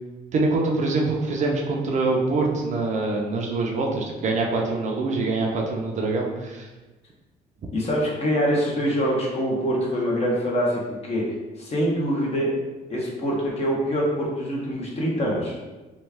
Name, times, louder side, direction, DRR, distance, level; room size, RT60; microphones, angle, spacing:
voice 1, 0.3-6.7, right 3 dB, 45° right, 0 dB, 0.6 m, -24 dB
voice 2, 7.7-11.2 11.6-12.5 12.9-15.5, equal, 40° left, -3 dB, 0.9 m, -24 dB
3.1 x 2.3 x 3.4 m, 1.2 s
cardioid pair, 110°, 17 cm